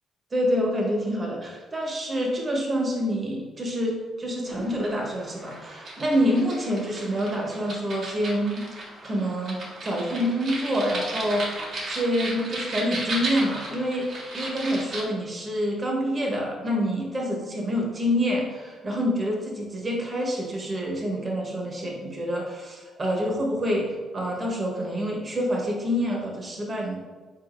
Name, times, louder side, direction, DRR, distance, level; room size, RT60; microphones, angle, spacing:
voice 1, 0.3-11.5 11.9-14.1 14.3-27.0, equal, 35° right, -1 dB, 1.2 m, -27 dB
sound 1, 4.4-15.0, right 2 dB, 60° right, 1.3 m, -35 dB
4.8 x 4.1 x 2.6 m, 1.4 s
cardioid pair, 90°, 0 cm